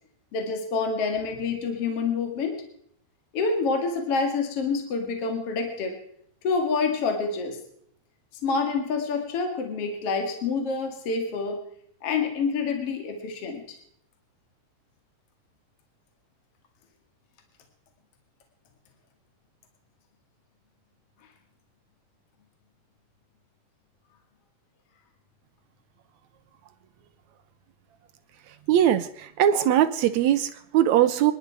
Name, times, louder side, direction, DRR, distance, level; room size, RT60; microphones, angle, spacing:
voice 1, 0.3-2.6 3.3-6.0 6.4-7.6 8.4-11.6 12.0-13.8, left 4 dB, 45° left, 4 dB, 2.9 m, -27 dB
voice 2, 28.7-31.3, right 11 dB, 75° right, 12 dB, 1.8 m, -21 dB
27.0 x 10.5 x 4.7 m, 0.67 s
omnidirectional pair, 3.8 m